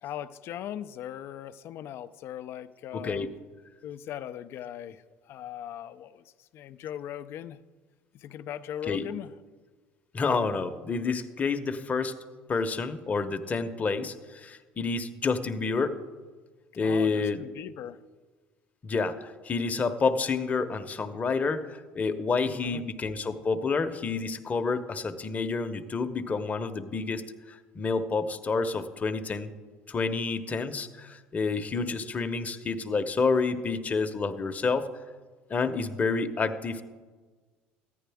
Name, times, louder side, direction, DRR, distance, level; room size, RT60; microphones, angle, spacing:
voice 1, 0.0-3.3 3.8-5.0 5.3-6.2 6.5-7.6 8.1-9.3 16.8-18.0 22.5-22.8, left 11 dB, 60° left, 13 dB, 0.5 m, -39 dB
voice 2, 2.9-3.3 8.9-9.1 10.1-12.2 12.5-16.0 16.8-17.5 18.8-29.5 29.9-34.9 35.5-36.8, left 4 dB, 30° left, 8 dB, 0.8 m, -29 dB
14.0 x 10.0 x 3.5 m, 1.4 s
supercardioid pair, 80°, 5 cm